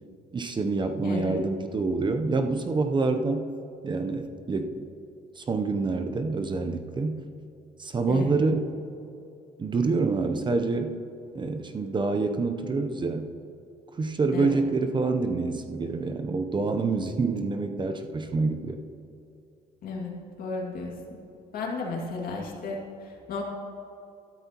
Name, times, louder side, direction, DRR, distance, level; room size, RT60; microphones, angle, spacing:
voice 1, 0.3-3.5 3.8-4.9 5.4-7.2 7.8-8.6 9.6-11.0 11.3-13.3 14.0-18.8, right 3 dB, 25° right, 7 dB, 0.7 m, -27 dB
voice 2, 1.0-1.4 8.1-8.3 14.3-14.6 19.8-21.2 21.5-23.4, left 3 dB, 60° left, -1 dB, 2.2 m, -34 dB
13.0 x 12.0 x 2.9 m, 2.6 s
cardioid pair, 110°, 17 cm